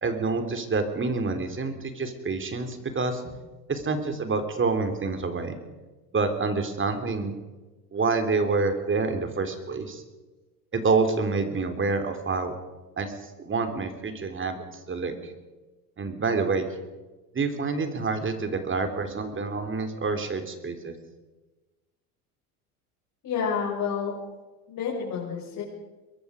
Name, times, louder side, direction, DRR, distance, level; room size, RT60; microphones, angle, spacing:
voice 1, 0.0-3.2 3.7-5.5 6.1-7.3 7.9-10.0 10.7-12.5 13.0-13.1 13.4-15.3 16.0-16.7 17.3-20.9, right 4 dB, 25° right, 7 dB, 3.6 m, -27 dB
voice 2, 23.2-24.1 24.7-25.6, left 6 dB, 45° left, -4 dB, 7.0 m, -29 dB
23.0 x 22.0 x 5.2 m, 1.2 s
hypercardioid pair, 75°, 46 cm